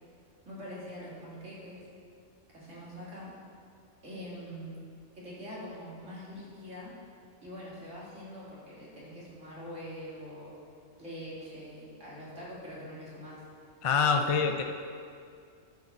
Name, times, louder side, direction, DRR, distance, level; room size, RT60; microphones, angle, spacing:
voice 1, 0.4-1.8 2.5-3.3 4.0-4.8 5.1-6.9 7.4-10.6 11.0-13.4 14.0-14.5, equal, 70° right, -7 dB, 3.0 m, -44 dB
voice 2, 13.8-14.6, left 5 dB, 50° left, 5 dB, 0.4 m, -25 dB
10.5 x 5.3 x 6.9 m, 2.3 s
omnidirectional pair, 1.3 m